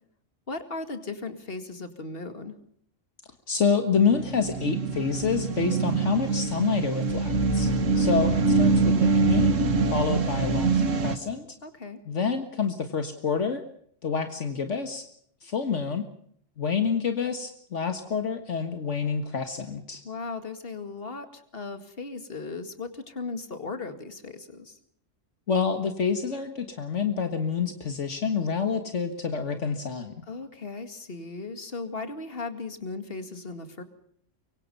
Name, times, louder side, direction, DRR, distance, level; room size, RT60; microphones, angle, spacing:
voice 1, 0.5-2.5 7.5-7.9 11.6-12.0 20.0-24.8 30.3-33.8, left 3 dB, 50° left, 8 dB, 2.4 m, -37 dB
voice 2, 3.5-7.7 8.0-9.5 9.9-11.5 12.1-13.6 14.0-15.1 15.4-16.0 16.6-20.0 25.5-30.1, left 5 dB, 70° left, 7 dB, 1.9 m, -27 dB
sound 1, 4.0-11.2, right 3 dB, 80° right, 1.9 m, -24 dB
24.5 x 24.0 x 5.5 m, 0.65 s
omnidirectional pair, 1.3 m